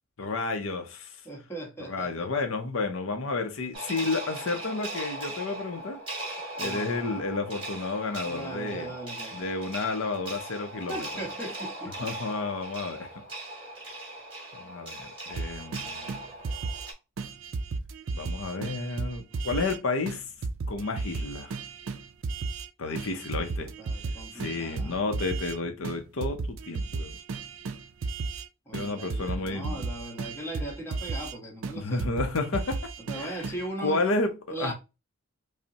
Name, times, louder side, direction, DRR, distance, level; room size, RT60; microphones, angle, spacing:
voice 1, 0.2-1.2 1.8-6.0 6.6-8.9 9.3-11.1 12.0-13.1 14.5-16.1 18.1-20.2 20.7-21.5 22.8-23.7 24.3-27.2 28.7-29.8 31.7-32.8 33.1-33.5 33.8-34.7, left 3 dB, 60° left, 0.5 m, -31 dB
voice 2, 1.2-2.3 6.6-7.2 8.3-9.4 10.9-11.9 22.8-24.9 28.7-32.1 33.1-34.0 34.5-34.7, right 1 dB, 10° left, 1.0 m, -39 dB
sound 1, 3.7-16.9, right 1 dB, 25° right, 1.5 m, -39 dB
sound 2, 15.3-16.9 17.2-19.8 20.1-20.2 20.4-22.7 23.0-25.6 25.8-28.5 28.7-31.4 31.6-33.7, right 4 dB, 60° right, 0.4 m, -34 dB
5.2 x 2.0 x 2.7 m
head